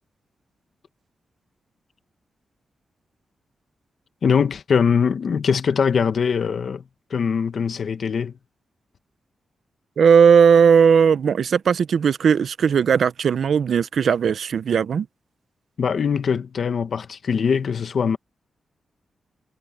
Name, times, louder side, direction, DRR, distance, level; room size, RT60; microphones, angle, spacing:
voice 1, 4.2-6.8 7.1-8.3 15.8-18.2, left 6 dB, 50° left, 1.3 m, -22 dB
voice 2, 10.0-15.1, right 7 dB, 60° right, 0.6 m, -17 dB
wide cardioid pair, 170°, 0 cm